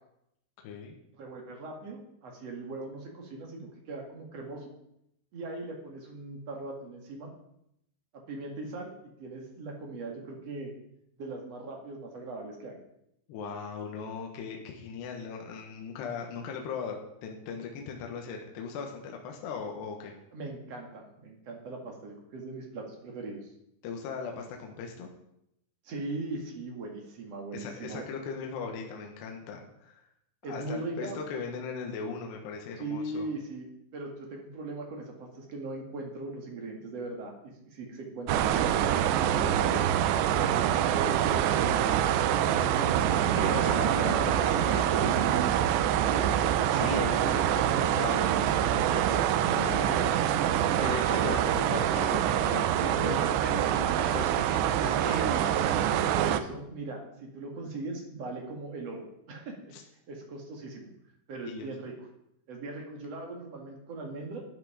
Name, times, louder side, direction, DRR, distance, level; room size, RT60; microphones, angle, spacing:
voice 1, 0.6-1.0 13.3-20.1 23.8-25.1 27.5-30.0 30.4-33.3 43.4-45.6 46.7-48.3 48.6-49.9 50.8-55.5 59.7-59.8 61.4-61.7, left 5 dB, 75° left, 1 dB, 3.3 m, -38 dB
voice 2, 1.2-4.7 5.3-7.3 8.3-10.7 11.2-12.8 20.3-23.5 25.8-28.1 30.4-31.2 32.8-33.7 33.9-39.9 40.3-42.8 46.1-46.4 49.8-50.1 50.5-51.6 52.8-53.3 55.1-55.5 56.1-59.7 60.1-60.9 61.3-61.9 62.5-64.4, right 2 dB, 45° right, 0 dB, 2.4 m, -39 dB
sound 1, 38.3-56.4, right 10 dB, 80° right, 2.8 m, -25 dB
13.0 x 8.6 x 5.0 m, 0.79 s
omnidirectional pair, 5.1 m